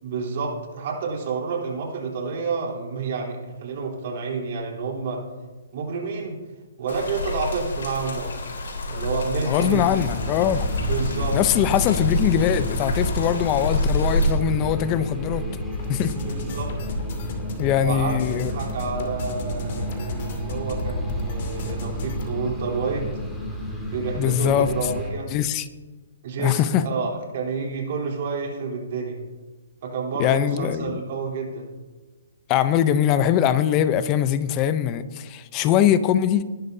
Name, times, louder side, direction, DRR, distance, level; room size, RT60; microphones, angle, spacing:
voice 1, 0.0-5.2 5.7-6.4 6.8-8.3 8.9-9.9 10.8-11.4 16.2-16.7 17.8-23.1 23.9-25.3 26.2-29.2 29.8-31.7, right 4 dB, 50° right, -1 dB, 3.6 m, -29 dB
sound 1, 6.9-14.3, left 1 dB, 75° left, 4.2 m, -28 dB
voice 2, 9.5-10.7 11.3-15.5 15.9-16.1 17.6-18.5 24.1-24.7 25.3-25.7 26.4-26.9 30.2-31.0 32.5-36.4, left 10 dB, 25° left, 12 dB, 0.7 m, -22 dB
sound 2, 9.7-25.1, equal, 5° left, 2.2 m, -31 dB
sound 3, 15.7-22.3, left 1 dB, 50° left, 2.4 m, -33 dB
20.0 x 11.0 x 2.8 m, 1.3 s
hypercardioid pair, 155°, 0 cm